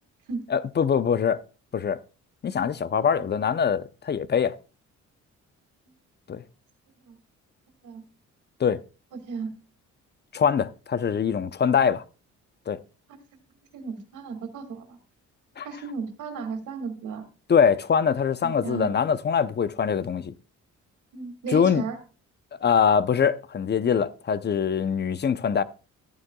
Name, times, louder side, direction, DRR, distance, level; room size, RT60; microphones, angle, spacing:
voice 1, 0.5-1.4 1.7-2.0 2.4-4.5 6.3-6.4 8.6-8.8 10.3-12.0 12.7-12.8 15.6-15.7 17.5-20.3 21.5-21.8 22.6-25.6, left 7 dB, 35° left, 0.7 m, -23 dB
voice 2, 13.7-15.0 15.6-17.2 18.4-18.9 21.1-22.0, right 5 dB, 80° right, 2.3 m, -34 dB
14.5 x 9.5 x 2.3 m
cardioid pair, 90°, 30 cm